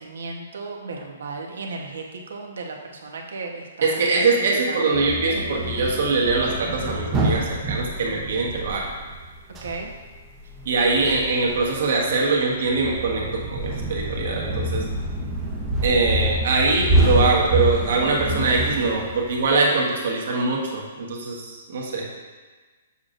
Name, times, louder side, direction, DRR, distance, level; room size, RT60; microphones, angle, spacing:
voice 1, 0.0-5.0 9.6-9.9 19.7-19.8, right 3 dB, 80° right, 2 dB, 1.0 m, -35 dB
voice 2, 3.8-8.9 10.6-14.8 15.8-22.1, right 3 dB, 60° right, -2 dB, 1.3 m, -22 dB
sound 1, 4.9-19.5, right 1 dB, 15° right, 0.7 m, -27 dB
7.0 x 6.5 x 2.5 m, 1.4 s
hypercardioid pair, 170°, 0 cm